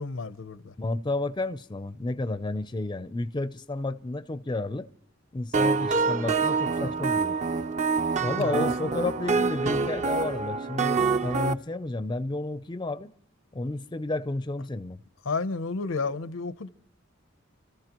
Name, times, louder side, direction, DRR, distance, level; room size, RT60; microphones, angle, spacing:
voice 1, 0.0-0.7 8.4-8.9 15.2-16.7, left 4 dB, 90° left, 0.8 m, -31 dB
voice 2, 0.8-4.9 5.3-7.3 8.2-13.1 13.5-15.0, left 2 dB, 20° left, 0.5 m, -31 dB
sound 1, 5.5-11.5, right 4 dB, 35° right, 0.6 m, -26 dB
29.0 x 14.0 x 3.0 m
head